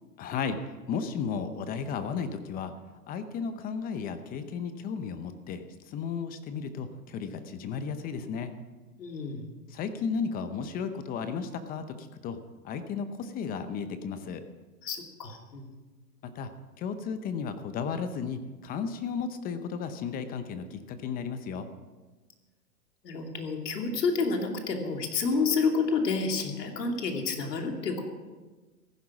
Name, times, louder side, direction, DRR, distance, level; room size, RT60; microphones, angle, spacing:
voice 1, 0.2-2.7 3.1-8.5 9.7-12.4 12.6-14.4 16.2-16.5 16.8-21.7, left 6 dB, 20° left, 10 dB, 0.7 m, -34 dB
voice 2, 9.0-9.4 14.8-15.7 23.0-28.0, left 4 dB, 75° left, 3 dB, 2.9 m, -29 dB
15.0 x 11.0 x 6.1 m, 1.3 s
hypercardioid pair, 130°, 49 cm